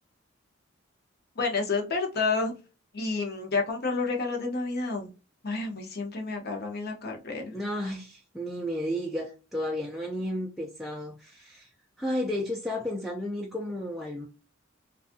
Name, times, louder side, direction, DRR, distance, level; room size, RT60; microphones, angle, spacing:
voice 1, 1.4-2.5 2.9-5.1 5.4-7.6, left 4 dB, 50° left, 0.8 m, -30 dB
voice 2, 7.5-11.7 12.0-14.3, left 1 dB, ahead, 0.3 m, -32 dB
2.5 x 2.3 x 2.5 m
head